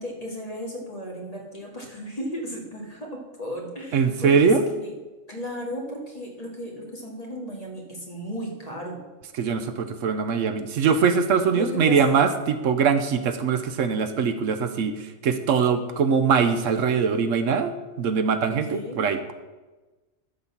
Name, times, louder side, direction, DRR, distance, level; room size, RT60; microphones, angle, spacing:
voice 1, 0.0-4.9 5.3-9.0 11.5-12.2 18.6-19.0, equal, 30° left, -1 dB, 2.0 m, -35 dB
voice 2, 3.9-4.7 9.4-17.7 18.0-19.2, right 6 dB, 75° right, 10 dB, 1.1 m, -22 dB
12.5 x 4.2 x 7.2 m, 1.2 s
omnidirectional pair, 1.4 m